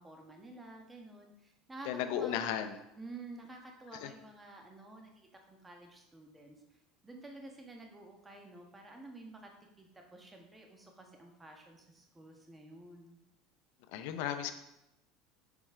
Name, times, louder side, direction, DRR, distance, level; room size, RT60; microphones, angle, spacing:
voice 1, 0.0-2.6 3.0-6.6 7.0-9.5 9.8-13.2, right 2 dB, 15° right, 1 dB, 1.5 m, -51 dB
voice 2, 1.9-2.8 4.0-4.1 13.9-14.5, left 10 dB, 75° left, 8 dB, 0.7 m, -35 dB
6.9 x 4.5 x 4.9 m, 0.87 s
supercardioid pair, 115°, 0 cm